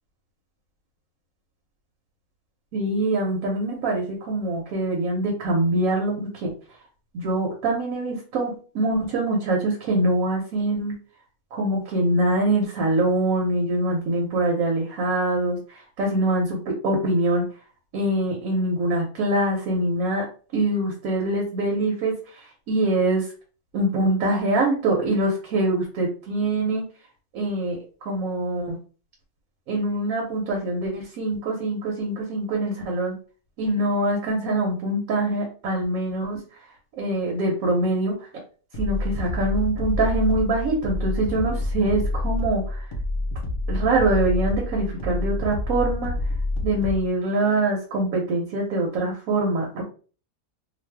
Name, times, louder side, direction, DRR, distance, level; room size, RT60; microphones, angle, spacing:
voice 1, 2.7-6.5 7.1-10.9 11.5-17.4 17.9-20.2 20.5-23.3 23.7-26.8 27.3-28.8 29.7-33.1 33.6-36.4 37.0-38.3 38.8-42.9 43.7-46.1 46.6-49.8, right 2 dB, 80° right, -1 dB, 1.2 m, -24 dB
sound 1, 38.7-47.1, left 2 dB, 45° left, 0.8 m, -27 dB
2.5 x 2.3 x 3.3 m, 0.39 s
omnidirectional pair, 1.4 m